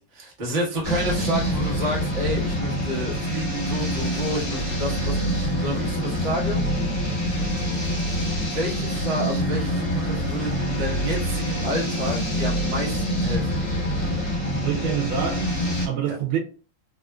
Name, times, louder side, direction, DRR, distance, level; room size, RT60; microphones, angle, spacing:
voice 1, 0.0-6.6 8.4-13.6 16.1-16.2, equal, 35° right, 1.1 m, -30 dB
sound 1, 0.8-15.9, equal, 35° left, 1.9 m, -26 dB
voice 2, 14.6-16.4, right 8 dB, 85° right, 1.5 m, -27 dB
3.4 x 2.5 x 2.2 m
omnidirectional pair, 2.2 m